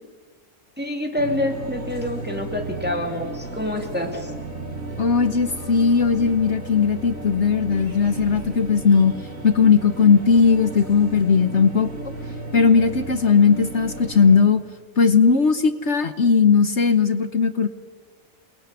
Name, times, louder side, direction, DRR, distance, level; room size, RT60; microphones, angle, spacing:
voice 1, 0.8-4.3, left 1 dB, 5° right, 2 dB, 2.6 m, -27 dB
sound 1, 1.2-14.4, right 2 dB, 65° right, 3.3 m, -34 dB
voice 2, 5.0-9.1 9.4-12.1 12.5-14.6 15.0-17.7, left 5 dB, 55° left, 10 dB, 1.3 m, -18 dB
29.0 x 21.0 x 9.6 m, 1.5 s
omnidirectional pair, 1.5 m